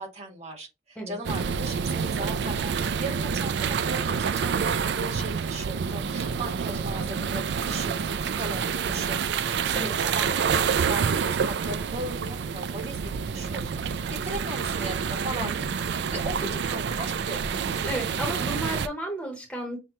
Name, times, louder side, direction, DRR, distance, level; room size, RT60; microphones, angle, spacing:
voice 1, 0.0-15.7 15.9-17.5, right 2 dB, 35° right, 1.2 m, -37 dB
sound 1, 1.2-18.9, right 6 dB, 65° right, 0.3 m, -28 dB
voice 2, 17.9-19.8, right 1 dB, 5° left, 0.8 m, -33 dB
5.9 x 2.2 x 2.9 m
head